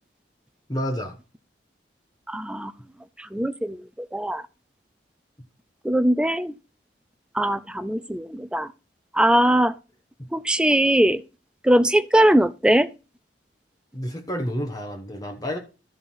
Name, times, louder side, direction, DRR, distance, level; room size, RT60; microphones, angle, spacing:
voice 1, 0.7-1.2 13.9-15.6, equal, 20° left, 1.1 m, -29 dB
voice 2, 2.3-2.7 3.3-3.8 4.1-4.4 5.8-6.5 7.3-8.7 9.1-9.7 10.3-11.2 11.6-12.9, right 1 dB, 5° right, 0.4 m, -20 dB
13.0 x 4.4 x 5.5 m
head